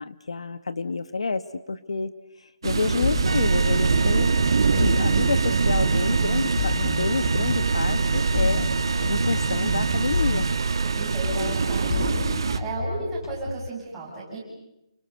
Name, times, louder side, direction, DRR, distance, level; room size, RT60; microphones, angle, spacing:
voice 1, 0.0-2.1 2.4-4.3 4.7-8.7 9.1-10.5, left 4 dB, 75° left, 12 dB, 1.6 m, -29 dB
sound 1, 2.6-12.6, right 5 dB, 50° right, 1.4 m, -25 dB
sound 2, 3.0-6.1 6.6-11.0 11.2-13.7, left 5 dB, 55° left, 0.9 m, -31 dB
sound 3, 3.3-12.7, right 4 dB, 75° right, 1.1 m, -27 dB
voice 2, 10.8-14.4, right 2 dB, 5° right, -6 dB, 6.8 m, -33 dB
30.0 x 26.0 x 6.8 m, 0.87 s
hypercardioid pair, 175°, 3 cm